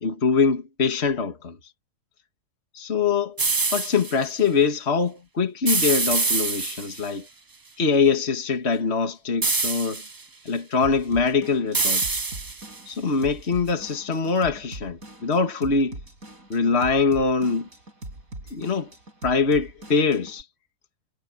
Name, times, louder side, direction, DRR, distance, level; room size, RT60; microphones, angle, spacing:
voice 1, 0.0-1.6 2.7-3.4 3.7-7.3 7.8-10.0 10.5-12.2 12.9-16.0 16.5-17.7 18.5-18.9 19.2-20.4, left 5 dB, 45° left, 2.1 m, -23 dB
sound 1, 3.4-4.1 5.7-7.1 9.4-10.2 11.7-12.8, right 3 dB, 30° right, 0.3 m, -25 dB
Drum kit / Drum, 10.8-20.4, right 1 dB, 65° right, 7.3 m, -42 dB
omnidirectional pair, 1.6 m